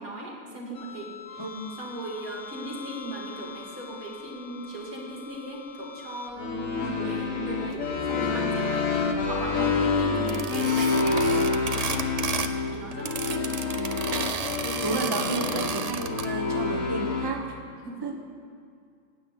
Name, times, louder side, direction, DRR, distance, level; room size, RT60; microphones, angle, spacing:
voice 1, 0.0-1.4 1.8-12.1 12.3-13.4 14.6-14.8 15.1-15.2 17.8-18.1, right 1 dB, 85° right, -2 dB, 2.9 m, -37 dB
sound 1, 0.8-17.3, left 4 dB, 65° left, 1.8 m, -29 dB
voice 2, 1.4-1.7 6.8-7.2 10.1-10.4 13.7-14.2 14.8-17.5 18.0-18.2, right 2 dB, 20° right, 2 dB, 1.1 m, -33 dB
sound 2, 10.3-12.6 12.9-16.3, right 5 dB, 50° right, 0.4 m, -32 dB
16.0 x 5.8 x 9.5 m, 2.2 s
omnidirectional pair, 1.5 m